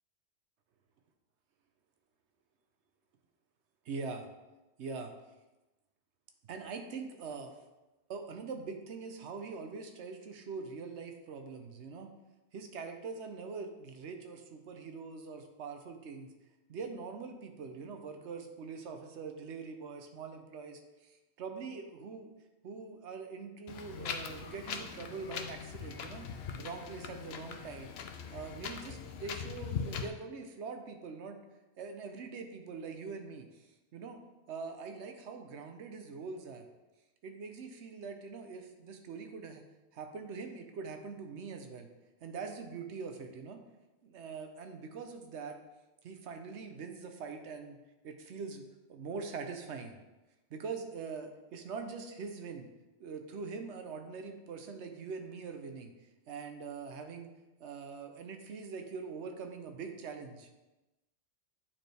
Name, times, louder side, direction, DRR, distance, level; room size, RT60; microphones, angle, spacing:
voice 1, 3.8-4.3 4.8-5.1 6.5-7.5 8.1-12.1 12.5-16.3 16.7-22.3 22.6-26.3 26.6-27.9 28.3-31.4 31.8-34.2 34.5-36.7 37.2-39.6 39.9-41.9 42.2-43.6 44.0-45.6 46.0-49.9 50.5-52.7 53.0-55.9 56.3-57.3 57.6-60.5, right 5 dB, 75° right, 5 dB, 1.0 m, -43 dB
Wind, 23.7-30.1, left 6 dB, 65° left, 0.8 m, -41 dB
8.9 x 4.3 x 3.3 m, 1.0 s
omnidirectional pair, 1.2 m